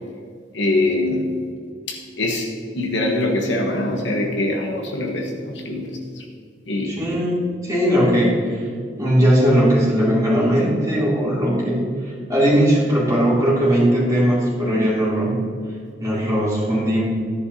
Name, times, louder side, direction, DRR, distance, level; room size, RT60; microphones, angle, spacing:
voice 1, 0.5-1.3 1.9-6.2 6.7-7.0, left 2 dB, 75° left, 1 dB, 1.2 m, -23 dB
voice 2, 6.9-8.6 9.0-11.9 12.3-15.4 16.0-17.0, equal, 20° right, -8 dB, 3.0 m, -18 dB
13.5 x 10.5 x 2.8 m, 2.2 s
head